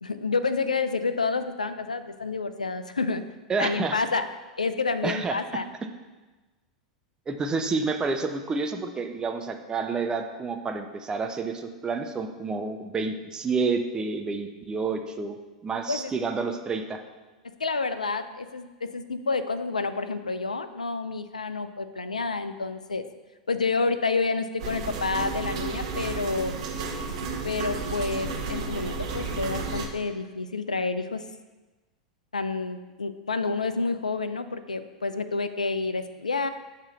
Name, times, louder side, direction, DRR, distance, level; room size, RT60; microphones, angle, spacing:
voice 1, 0.0-3.2 3.6-4.3 4.6-5.7 15.9-16.1 17.6-23.0 23.5-26.5 27.4-31.2 32.3-36.5, left 4 dB, 90° left, 11 dB, 0.4 m, -29 dB
voice 2, 3.5-4.0 5.0-5.4 7.3-17.0, right 4 dB, 20° right, 5 dB, 0.6 m, -29 dB
sound 1, 24.6-29.9, right 4 dB, 65° right, 0.8 m, -32 dB
6.8 x 2.9 x 5.6 m, 1.2 s
figure-of-eight pair, 90°, 4 cm